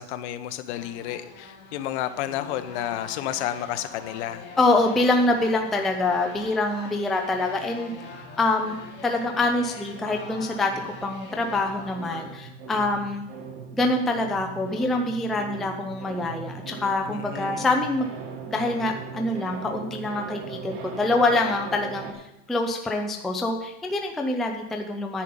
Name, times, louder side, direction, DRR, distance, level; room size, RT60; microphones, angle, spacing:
voice 1, 0.0-4.5 17.1-17.7, left 12 dB, 60° left, 11 dB, 1.0 m, -31 dB
sound 1, 0.7-12.2, left 3 dB, 25° left, 2.6 m, -43 dB
sound 2, 4.4-7.0 7.2-22.1, right 6 dB, 55° right, 2.0 m, -41 dB
voice 2, 4.6-7.9 8.4-8.8 9.0-10.7 11.0-13.2 13.7-18.1 18.5-22.2 22.5-25.2, left 2 dB, ahead, 2 dB, 0.4 m, -25 dB
10.5 x 5.4 x 8.5 m, 0.87 s
supercardioid pair, 160°, 39 cm